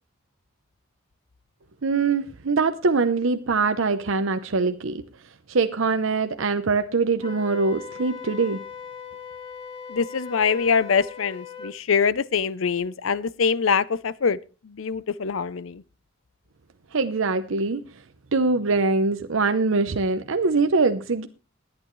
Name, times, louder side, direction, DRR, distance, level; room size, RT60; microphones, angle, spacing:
voice 1, 1.8-5.0 5.5-8.6 16.9-17.8 18.3-21.3, right 4 dB, 70° right, 0.7 m, -23 dB
Wind instrument woodwind instrument, 7.2-11.8, left 6 dB, 30° left, 1.6 m, -39 dB
voice 2, 9.9-14.4 14.6-15.8, left 6 dB, 75° left, 0.6 m, -24 dB
21.0 x 8.9 x 3.1 m
head